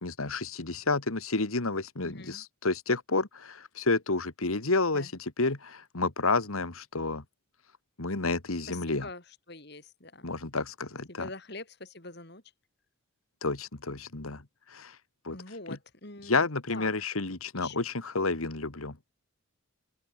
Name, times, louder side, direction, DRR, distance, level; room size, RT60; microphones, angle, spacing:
voice 1, 0.0-7.2 8.0-9.1 10.2-11.3 13.4-14.4 14.7-15.0 15.2-15.4 15.7-15.8 16.2-19.0, left 3 dB, 90° left, 2.1 m, -30 dB
voice 2, 2.0-2.4 4.9-5.1 8.7-10.3 11.1-12.4 15.3-16.9 17.5-17.8, left 2 dB, 50° left, 3.5 m, -44 dB
open air
head